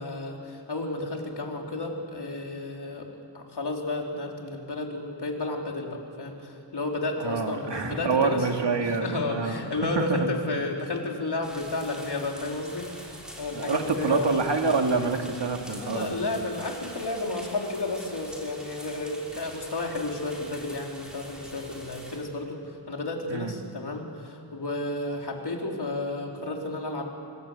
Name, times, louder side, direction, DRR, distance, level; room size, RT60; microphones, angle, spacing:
voice 1, 0.0-3.1 3.3-8.5 8.8-14.4 15.7-27.1, left 2 dB, 60° left, 0 dB, 4.0 m, -32 dB
voice 2, 7.2-10.3 13.5-16.2 23.3-23.5, right 4 dB, 70° right, 4 dB, 2.4 m, -27 dB
sound 1, 11.4-22.2, equal, ahead, 5.9 m, -44 dB
26.0 x 25.5 x 8.3 m, 2.8 s
wide cardioid pair, 110°, 45 cm